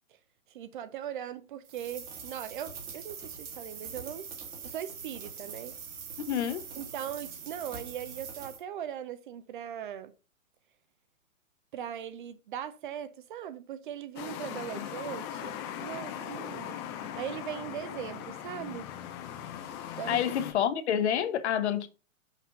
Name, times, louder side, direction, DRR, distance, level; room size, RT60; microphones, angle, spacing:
voice 1, 0.5-4.3 4.6-5.8 6.8-10.1 11.7-15.5 15.8-16.8 17.2-18.9 20.0-20.2, right 10 dB, 40° right, 0.5 m, -39 dB
sound 1, 1.6-8.6, right 6 dB, 20° right, 1.3 m, -43 dB
voice 2, 6.2-6.6 14.8-14.9 20.1-21.9, left 9 dB, 55° left, 1.0 m, -28 dB
sound 2, 14.2-20.5, left 10 dB, 20° left, 0.5 m, -39 dB
6.0 x 4.2 x 5.0 m
hypercardioid pair, 135°, 41 cm